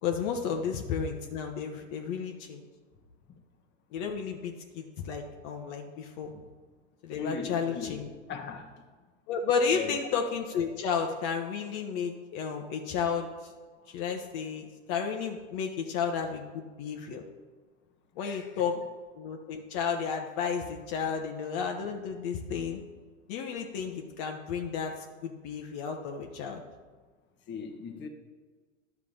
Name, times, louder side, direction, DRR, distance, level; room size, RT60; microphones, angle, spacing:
voice 1, 0.0-2.6 3.9-6.3 7.0-8.1 9.3-13.5 13.9-17.2 18.2-18.8 19.2-22.8 23.3-26.6, left 6 dB, 50° left, 3 dB, 1.3 m, -32 dB
voice 2, 7.1-8.0 8.3-8.7 9.7-9.9 18.2-18.5 27.5-28.1, left 5 dB, 30° left, 4 dB, 1.4 m, -38 dB
11.0 x 4.8 x 7.2 m, 1.4 s
hypercardioid pair, 115°, 37 cm